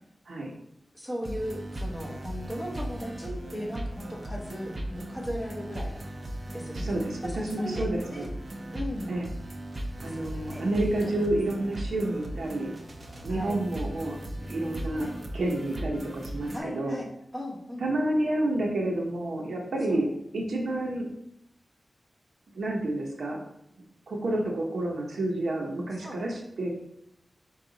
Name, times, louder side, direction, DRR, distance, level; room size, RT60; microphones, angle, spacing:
voice 1, 0.9-6.0 6.5-8.3 8.7-9.1 10.0-11.7 13.3-13.6 14.9-15.1 16.5-17.9 19.9-20.0 26.0-26.2, equal, 10° left, -3 dB, 1.0 m, -38 dB
sound 1, 1.2-16.6, right 1 dB, 35° right, 0.6 m, -37 dB
voice 2, 6.7-8.3 9.1-9.3 10.0-12.7 13.2-15.1 15.3-17.0 17.8-20.1 20.3-21.1 22.5-23.4 24.1-26.7, right 1 dB, 90° right, 0 dB, 0.8 m, -29 dB
4.7 x 2.4 x 3.9 m, 0.77 s
wide cardioid pair, 120°, 0 cm